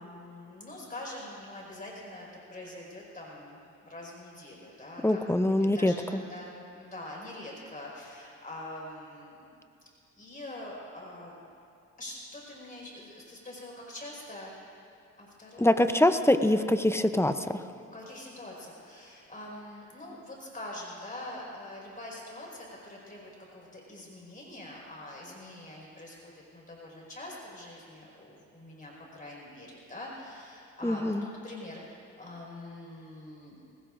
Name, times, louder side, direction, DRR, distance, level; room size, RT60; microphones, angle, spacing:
voice 1, 0.0-9.6 10.2-11.4 12.0-14.8 15.2-15.9 16.6-16.9 17.9-33.6, left 1 dB, 30° left, -3 dB, 4.8 m, -44 dB
voice 2, 5.0-6.2 15.6-17.7 30.8-31.2, left 1 dB, 10° left, 9 dB, 0.6 m, -24 dB
24.5 x 20.0 x 2.6 m, 2.6 s
cardioid pair, 90°, 30 cm